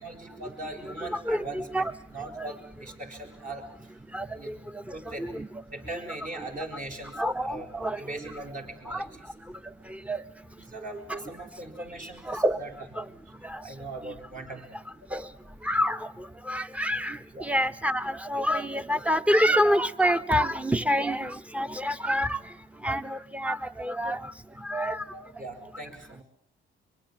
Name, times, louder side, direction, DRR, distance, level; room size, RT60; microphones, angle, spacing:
voice 1, 0.0-3.9 4.3-4.5 4.9-5.3 5.7-7.1 7.4-9.1 10.6-12.7 13.5-14.8 15.1-15.2 17.3-17.5 21.7-21.8 25.1-26.2, right 2 dB, 40° right, 3 dB, 6.7 m, -40 dB
voice 2, 0.9-1.9 2.4-2.5 4.1-4.5 4.9-5.5 7.1-8.3 8.9-9.0 10.1-10.2 12.3-12.6 13.0-13.1 13.4-13.6 15.1-15.2 15.6-16.1 16.5-22.4 22.8-24.3 24.6-25.0, equal, 5° right, 11 dB, 1.2 m, -27 dB
24.0 x 23.5 x 7.7 m, 0.67 s
cardioid pair, 90°, 20 cm